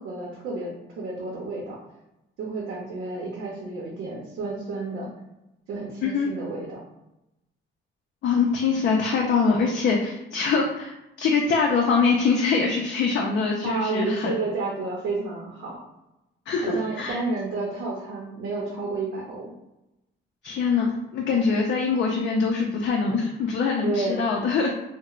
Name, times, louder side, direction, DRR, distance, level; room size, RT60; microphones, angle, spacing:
voice 1, 0.0-1.8 2.4-5.1 5.7-6.8 13.6-15.8 16.6-19.5 23.8-24.2, right 3 dB, 85° right, -3 dB, 0.7 m, -31 dB
voice 2, 8.2-14.3 16.5-17.2 20.4-24.7, left 5 dB, 65° left, 0 dB, 0.4 m, -23 dB
2.3 x 2.0 x 3.0 m, 0.90 s
cardioid pair, 90°, 20 cm